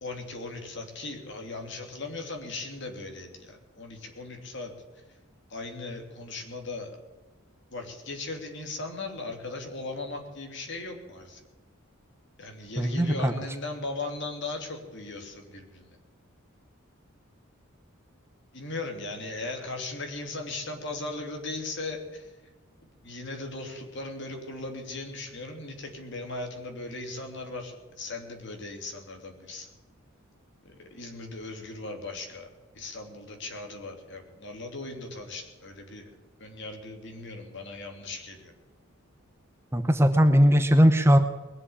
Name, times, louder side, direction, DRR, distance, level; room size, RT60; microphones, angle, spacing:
voice 1, 0.0-4.7 5.5-6.9 7.7-11.4 12.4-16.0 18.5-22.3 23.0-29.7 30.6-32.5 32.7-36.1 36.4-38.5, left 2 dB, 55° left, 3 dB, 3.0 m, -38 dB
voice 2, 12.8-13.3 39.7-41.2, equal, 10° right, 7 dB, 0.9 m, -19 dB
21.0 x 7.7 x 8.6 m, 1.2 s
head